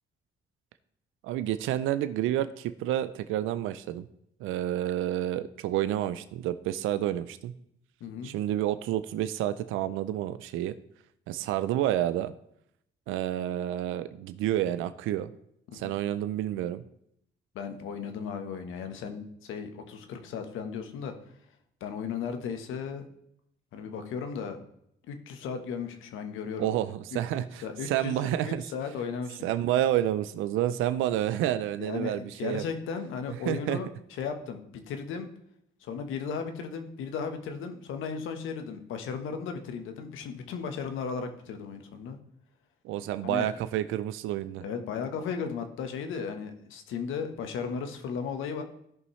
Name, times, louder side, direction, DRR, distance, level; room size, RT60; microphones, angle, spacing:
voice 1, 1.2-4.1 4.4-7.5 8.2-10.7 11.3-12.3 13.1-15.3 15.7-16.8 26.6-28.6 29.4-32.6 33.5-33.8 42.8-44.6, right 12 dB, 90° right, 13 dB, 0.5 m, -29 dB
voice 2, 8.0-8.3 15.7-15.9 17.5-21.1 21.8-23.0 23.7-24.6 25.1-26.7 27.1-27.2 27.6-29.5 31.8-33.9 34.2-35.3 35.8-42.2 43.2-43.5 44.6-48.6, left 6 dB, 85° left, 7 dB, 1.2 m, -35 dB
16.0 x 5.5 x 3.2 m, 0.74 s
cardioid pair, 90°, 20 cm